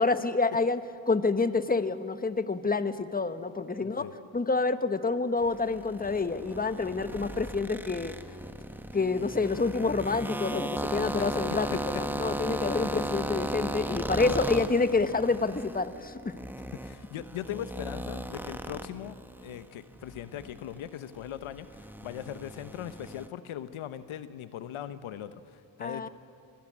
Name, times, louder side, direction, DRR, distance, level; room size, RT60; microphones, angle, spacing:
voice 1, 0.0-8.1 8.9-16.4 25.8-26.1, left 3 dB, 20° left, 11 dB, 1.2 m, -28 dB
voice 2, 3.8-4.1 11.7-11.8 14.3-14.4 16.8-26.1, left 11 dB, 80° left, 13 dB, 1.0 m, -40 dB
sound 1, 5.4-19.6 19.9-23.3, right 1 dB, 5° right, 1.3 m, -36 dB
25.0 x 16.5 x 8.6 m, 2.5 s
supercardioid pair, 55°, 48 cm